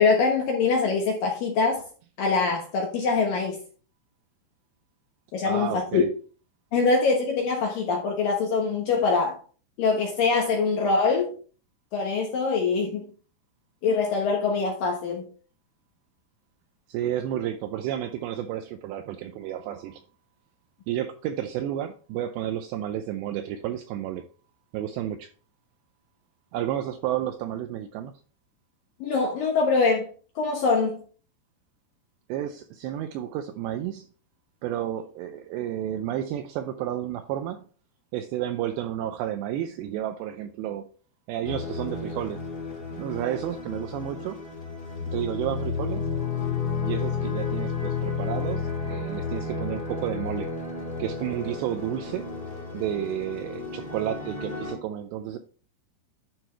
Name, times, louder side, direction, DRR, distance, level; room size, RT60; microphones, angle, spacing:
voice 1, 0.0-1.8 2.2-3.6 5.3-6.0 6.7-9.4 9.8-11.3 11.9-13.0 13.8-15.3 29.0-30.1 30.4-31.0, left 4 dB, 65° left, 1 dB, 2.3 m, -23 dB
voice 2, 5.4-6.1 16.9-20.0 20.9-24.2 24.7-25.3 26.5-28.1 32.3-34.1 34.6-37.7 38.1-40.9 41.3-42.4 43.0-44.4 45.1-46.1 46.8-50.5 51.0-52.2 52.7-55.4, right 11 dB, 85° right, 8 dB, 2.5 m, -31 dB
sound 1, 41.4-54.7, left 5 dB, 20° left, 1.7 m, -32 dB
11.5 x 6.1 x 3.3 m, 0.40 s
omnidirectional pair, 5.6 m